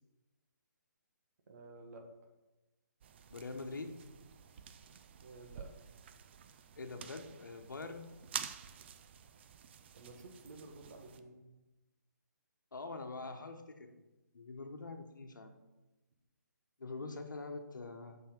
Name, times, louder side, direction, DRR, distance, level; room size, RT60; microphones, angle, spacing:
voice 1, 1.5-2.1 5.2-5.7 9.9-11.5, right 2 dB, 55° right, 3 dB, 1.6 m, -52 dB
sound 1, 3.0-11.2, right 8 dB, 35° right, 0.5 m, -49 dB
voice 2, 3.3-4.0 6.8-8.1 12.7-13.9 14.3-15.5 16.8-18.2, left 3 dB, 80° left, 6 dB, 1.1 m, -44 dB
6.2 x 5.7 x 6.0 m, 1.1 s
hypercardioid pair, 150°, 10 cm